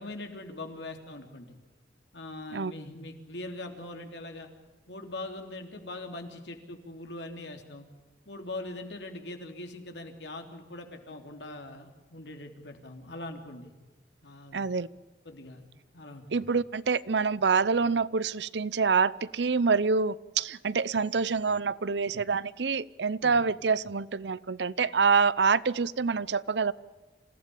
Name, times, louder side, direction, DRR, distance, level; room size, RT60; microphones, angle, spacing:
voice 1, 0.0-1.6 2.1-4.5 4.9-7.9 8.2-13.7 14.2-14.7 15.2-15.7 15.9-16.2 23.2-23.4, left 2 dB, 85° left, 4 dB, 3.4 m, -41 dB
voice 2, 14.5-14.9 16.3-26.7, right 5 dB, 80° right, 19 dB, 0.7 m, -26 dB
27.0 x 15.5 x 8.6 m, 1.2 s
head